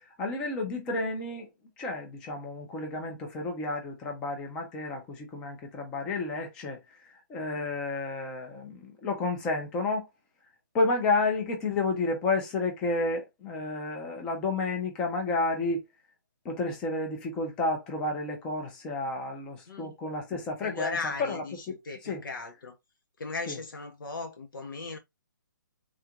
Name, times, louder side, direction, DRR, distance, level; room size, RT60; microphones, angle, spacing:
voice 1, 0.0-1.5 1.8-10.1 10.7-15.8 16.4-22.2 23.5-23.6, left 3 dB, 5° left, 0.4 m, -31 dB
voice 2, 20.6-22.8 23.2-25.0, left 4 dB, 85° left, 0.9 m, -37 dB
3.6 x 2.4 x 2.8 m
hypercardioid pair, 175°, 11 cm